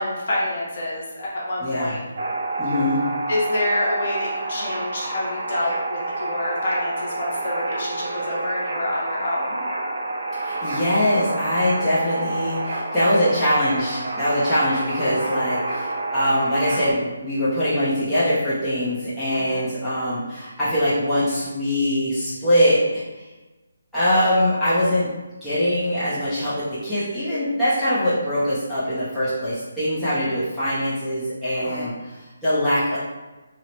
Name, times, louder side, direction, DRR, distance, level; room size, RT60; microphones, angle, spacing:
voice 1, 0.0-2.0 3.3-9.6 19.3-19.6 31.5-31.9, left 1 dB, 40° left, -5 dB, 0.9 m, -27 dB
voice 2, 1.6-2.0 2.6-3.0 10.4-23.2 23.9-25.1 25.4-32.2 32.4-33.0, equal, ahead, -16 dB, 0.5 m, -22 dB
sound 1, 2.2-16.9, right 2 dB, 50° right, 0.7 m, -28 dB
2.9 x 2.0 x 4.1 m, 1.1 s
hypercardioid pair, 175°, 0 cm